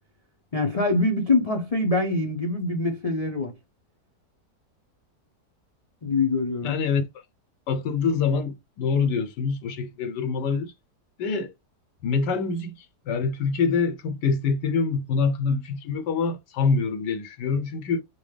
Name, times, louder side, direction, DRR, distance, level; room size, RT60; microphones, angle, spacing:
voice 1, 0.5-3.6 6.0-6.7, left 2 dB, 40° left, 0.5 m, -24 dB
voice 2, 6.6-7.1 7.7-10.7 11.2-11.5 12.0-18.0, left 5 dB, 85° left, 1.4 m, -25 dB
6.0 x 2.3 x 3.2 m
omnidirectional pair, 1.8 m